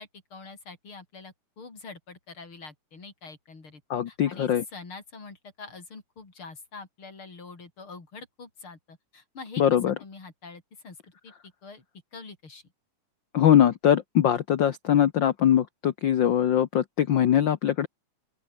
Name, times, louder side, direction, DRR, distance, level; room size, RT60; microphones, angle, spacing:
voice 1, 0.0-3.8 4.1-9.6 10.0-11.0 11.2-11.3 11.6-11.8 12.1-12.6, left 4 dB, 45° left, 5.5 m, -45 dB
voice 2, 3.9-4.6 9.6-9.9 13.3-17.9, left 10 dB, 90° left, 1.0 m, -22 dB
open air
omnidirectional pair, 3.4 m